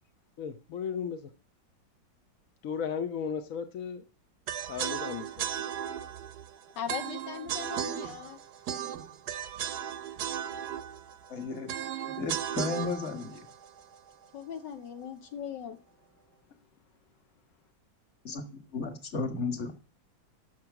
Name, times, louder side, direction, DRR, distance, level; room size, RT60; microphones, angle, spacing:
voice 1, 0.4-1.2 2.6-4.0 4.7-5.6, left 7 dB, 55° left, 7 dB, 1.1 m, -35 dB
sound 1, 4.5-14.5, right 10 dB, 65° right, 1.1 m, -36 dB
voice 2, 6.8-8.4 14.3-15.8, left 8 dB, 70° left, 7 dB, 1.4 m, -39 dB
voice 3, 11.3-11.7 12.2-13.4 18.2-19.7, left 4 dB, 40° left, 7 dB, 1.7 m, -34 dB
13.0 x 6.1 x 5.9 m, 0.35 s
omnidirectional pair, 2.1 m